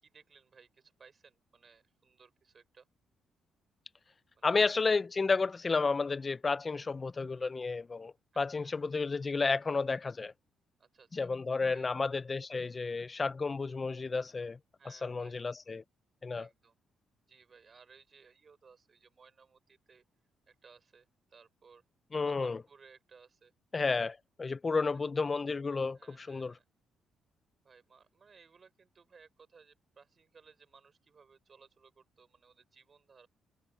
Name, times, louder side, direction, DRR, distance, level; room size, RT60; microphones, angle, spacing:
voice 1, 0.0-2.9 4.3-4.6 8.3-8.8 10.8-11.3 11.7-11.9 14.8-15.4 16.3-16.8 17.3-20.0 20.5-21.8 22.2-23.5 24.9-25.0 25.9-26.7 27.6-33.3, right 5 dB, 40° right, 6.5 m, -60 dB
voice 2, 4.4-10.3 11.1-14.6 14.9-15.8 16.2-16.5 22.1-22.6 23.7-26.5, left 4 dB, 30° left, 0.5 m, -32 dB
cardioid pair, 90°, 0 cm